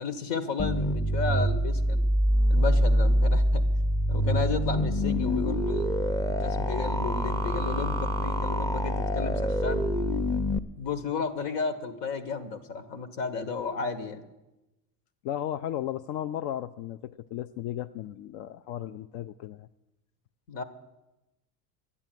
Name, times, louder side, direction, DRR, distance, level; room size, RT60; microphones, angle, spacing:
voice 1, 0.0-2.1 2.5-3.6 4.1-5.9 6.3-9.9 10.8-14.2 20.5-20.6, left 5 dB, 80° left, 11 dB, 1.6 m, -33 dB
sound 1, 0.6-10.6, equal, 5° left, 0.5 m, -25 dB
voice 2, 15.2-19.7, left 11 dB, 60° left, 10 dB, 0.6 m, -35 dB
11.5 x 8.6 x 9.1 m, 1.0 s
supercardioid pair, 90°, 48 cm